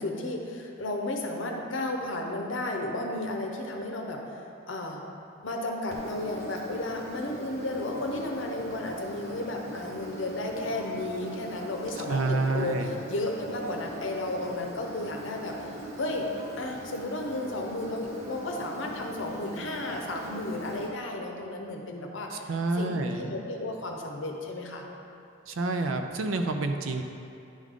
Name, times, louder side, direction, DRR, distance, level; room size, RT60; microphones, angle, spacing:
voice 1, 0.0-5.0 5.4-24.9, left 2 dB, 70° left, 1 dB, 0.8 m, -33 dB
Engine, 5.9-20.9, right 1 dB, 35° right, 1.0 m, -41 dB
voice 2, 12.1-13.0 22.5-23.3 25.5-27.0, right 3 dB, 85° right, 6 dB, 0.5 m, -28 dB
10.5 x 3.6 x 3.7 m, 2.7 s
head